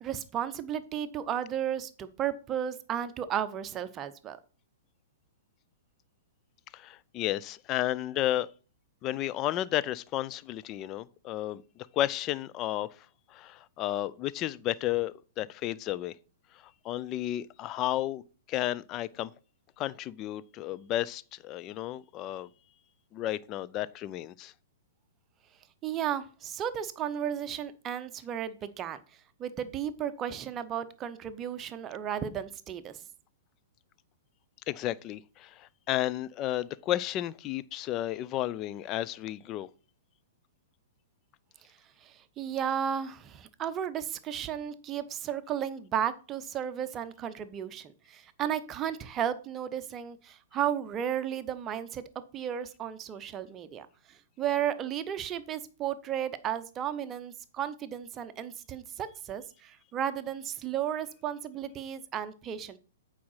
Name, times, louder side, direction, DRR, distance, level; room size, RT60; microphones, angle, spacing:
voice 1, 0.0-4.4 25.8-29.0 29.4-33.0 42.0-52.0 52.3-62.8, right 9 dB, 25° right, 0.8 m, -34 dB
voice 2, 6.7-8.5 9.0-12.9 13.3-16.1 16.8-18.2 18.5-19.3 19.8-22.5 23.1-24.5 34.7-39.7, left 13 dB, 30° left, 0.4 m, -32 dB
8.5 x 4.9 x 5.7 m
figure-of-eight pair, 110°, 0 cm